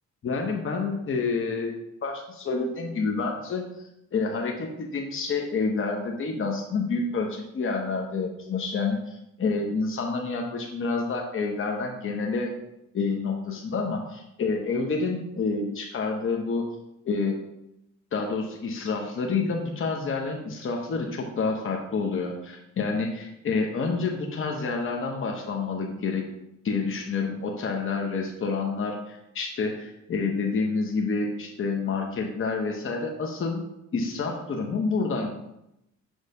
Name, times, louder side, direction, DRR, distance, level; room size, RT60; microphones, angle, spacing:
voice 1, 0.2-1.7 2.0-12.5 12.9-16.6 17.0-17.4 18.1-26.2 26.6-33.6 33.9-35.3, left 4 dB, 45° left, 1 dB, 0.9 m, -28 dB
6.4 x 3.2 x 5.4 m, 0.84 s
cardioid pair, 90°, 30 cm